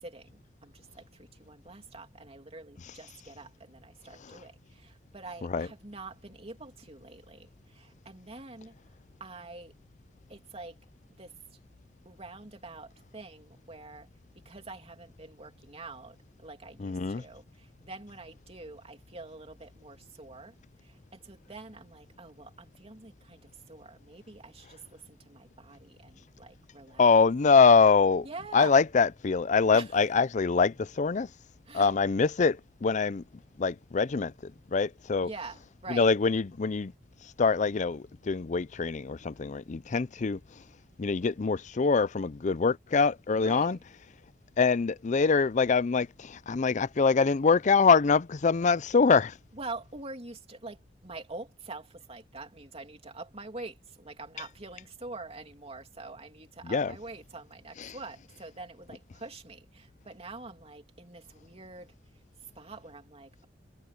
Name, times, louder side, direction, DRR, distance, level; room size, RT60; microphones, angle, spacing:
voice 1, 0.0-8.8 9.2-9.7 10.3-10.8 11.2-11.3 12.0-14.1 14.4-20.5 20.8-23.4 23.7-27.0 28.2-28.8 29.7-29.9 31.7-32.0 35.2-36.1 43.3-43.8 49.5-61.9 62.5-63.5, right 3 dB, 35° right, 3.0 m, -45 dB
voice 2, 16.8-17.2 27.0-28.3 28.5-31.3 31.7-33.2 33.6-35.3 35.9-36.9 37.4-40.4 41.0-43.8 44.6-49.3 56.6-56.9 57.8-57.9, left 5 dB, 45° left, 0.5 m, -24 dB
head